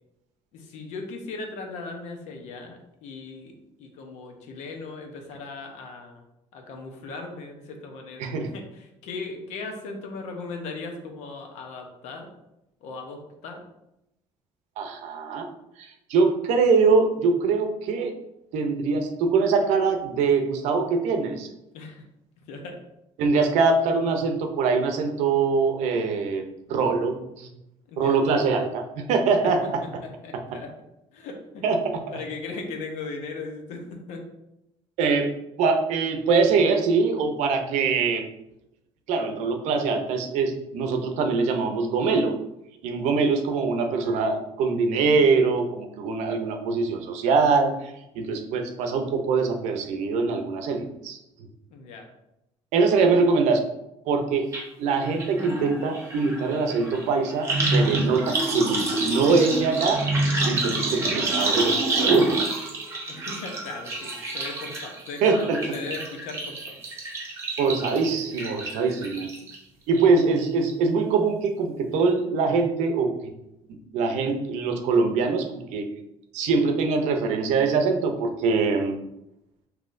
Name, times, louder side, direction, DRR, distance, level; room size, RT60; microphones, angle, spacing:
voice 1, 0.5-6.3 6.5-12.3 12.8-13.6 21.7-22.0 22.5-22.8 27.9-28.3 29.4-29.5 30.2-30.7 31.1-31.6 32.1-34.2 51.7-52.1 52.9-53.1 63.1-66.8, left 3 dB, 80° left, 3 dB, 0.8 m, -38 dB
voice 2, 14.8-15.5 15.8-18.1 18.5-21.5 23.2-27.5 28.0-29.8 31.6-32.0 35.0-35.3 35.6-38.2 39.1-42.3 42.8-51.2 52.7-53.6 54.1-54.5 54.8-60.0 60.5-62.6 65.2-65.6 67.6-69.3 69.9-73.3 73.9-75.9 76.3-79.0, right 4 dB, 85° right, 5 dB, 0.6 m, -23 dB
sound 1, 54.5-54.6 54.9-69.6 69.9-70.4 70.7-70.8, right 2 dB, 25° right, 0.8 m, -28 dB
5.5 x 2.9 x 2.6 m, 0.87 s
cardioid pair, 170°, 12 cm